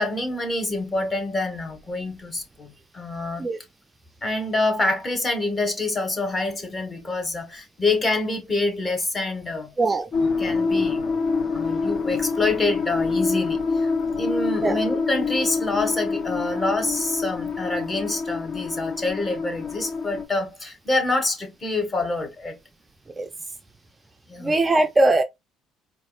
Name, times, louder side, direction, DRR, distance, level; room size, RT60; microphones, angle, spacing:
voice 1, 0.0-3.4 4.2-9.7 10.4-11.0 11.5-13.9 14.2-22.6 24.3-24.6, left 2 dB, 25° left, 1.3 m, -26 dB
voice 2, 9.8-10.1 14.6-14.8 23.2-23.3 24.4-25.2, right 2 dB, 20° right, 0.4 m, -20 dB
sound 1, 10.1-20.2, left 4 dB, 50° left, 1.0 m, -26 dB
4.5 x 2.4 x 2.3 m
cardioid pair, 105°, 0 cm